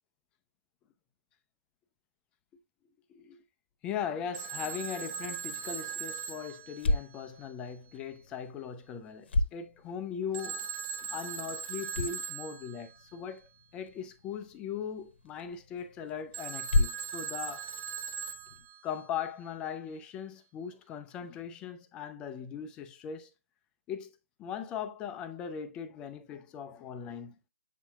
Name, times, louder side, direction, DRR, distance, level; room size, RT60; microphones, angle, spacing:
voice 1, 3.8-10.7 11.1-17.7 18.8-23.3 23.9-24.1 24.4-27.4, left 7 dB, 10° left, 0.4 m, -39 dB
Telephone, 4.3-7.4 10.3-12.9 16.3-19.0, right 7 dB, 20° right, 1.3 m, -39 dB
sound 1, 5.1-18.7, left 2 dB, 45° left, 0.9 m, -36 dB
8.2 x 5.5 x 2.3 m
figure-of-eight pair, 145°, 8 cm